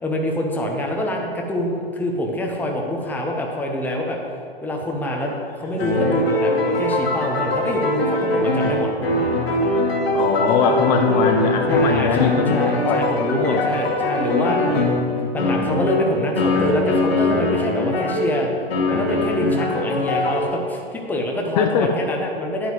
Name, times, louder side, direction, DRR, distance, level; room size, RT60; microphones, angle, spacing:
voice 1, 0.0-4.2 4.6-8.9 10.7-11.1 11.7-18.5 18.9-22.7, left 1 dB, 5° left, 0 dB, 1.0 m, -25 dB
sound 1, 5.2-18.3 18.7-20.4, left 2 dB, 75° left, 1.8 m, -22 dB
voice 2, 10.1-13.0 13.3-13.7 14.7-14.8 15.2-15.3 21.6-21.9, left 6 dB, 45° left, 5 dB, 0.9 m, -21 dB
9.9 x 9.2 x 3.2 m, 2.3 s
figure-of-eight pair, 110°, 31 cm